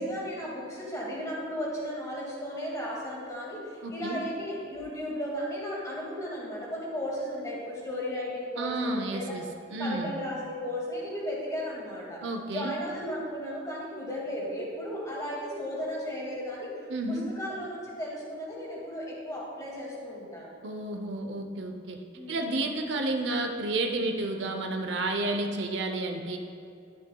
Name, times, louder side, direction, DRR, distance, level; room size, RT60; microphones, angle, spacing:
voice 1, 0.0-9.4 9.8-12.2 12.5-16.7 17.1-20.6 22.2-22.6, equal, 15° left, -4 dB, 2.0 m, -35 dB
voice 2, 3.8-4.3 8.6-10.1 12.2-12.8 16.9-17.3 20.6-22.0 22.3-26.4, right 2 dB, 60° right, 4 dB, 0.6 m, -31 dB
11.0 x 10.5 x 2.3 m, 2.5 s
head